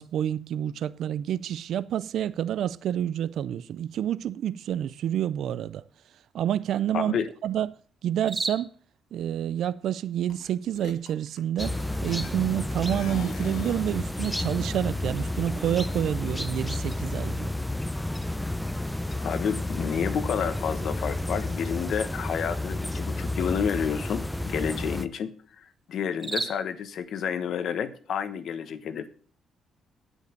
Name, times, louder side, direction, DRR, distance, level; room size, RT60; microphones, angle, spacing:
voice 1, 0.0-5.8 6.3-7.2 7.4-8.7 9.1-17.6, right 10 dB, 75° right, 0.4 m, -28 dB
voice 2, 6.9-7.3 19.2-29.1, left 7 dB, 65° left, 1.2 m, -30 dB
sound 1, 8.0-27.9, right 3 dB, 25° right, 2.4 m, -44 dB
sound 2, 10.3-10.5 10.7-12.5 12.8-14.0, left 6 dB, 90° left, 1.8 m, -42 dB
sound 3, 11.6-25.1, left 1 dB, 5° left, 0.6 m, -31 dB
9.4 x 8.3 x 6.8 m
cardioid pair, 120°, 0 cm